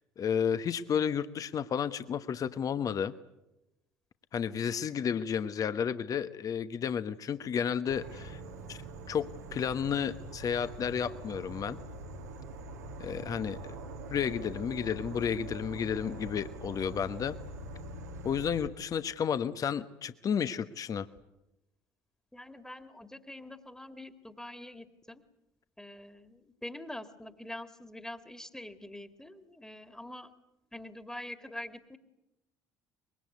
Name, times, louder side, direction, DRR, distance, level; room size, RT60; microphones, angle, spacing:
voice 1, 0.2-3.1 4.3-8.4 8.7-8.8 9.1-11.8 13.0-13.6 14.1-17.4 18.2-21.1, left 7 dB, 40° left, 12 dB, 1.1 m, -32 dB
Insect / Frog, 7.9-18.7, right 2 dB, 80° right, 2.6 m, -44 dB
voice 2, 22.3-25.2 25.8-30.3 30.7-32.0, left 1 dB, 5° left, 9 dB, 2.1 m, -45 dB
24.0 x 22.0 x 9.5 m, 0.95 s
figure-of-eight pair, 55°, 9 cm